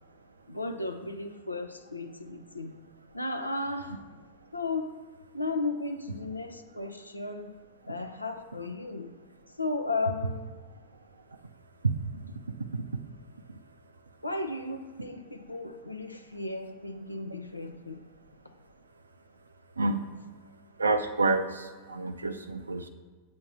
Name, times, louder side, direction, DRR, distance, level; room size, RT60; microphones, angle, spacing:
voice 1, 0.5-2.8 3.1-4.2 4.5-4.9 5.3-7.6 7.9-9.1 9.6-10.5 14.2-18.0, left 3 dB, 85° left, 6 dB, 0.5 m, -35 dB
voice 2, 20.8-22.9, right 3 dB, 80° right, 8 dB, 0.4 m, -28 dB
7.5 x 4.4 x 5.8 m, 1.5 s
figure-of-eight pair, 90°, 0 cm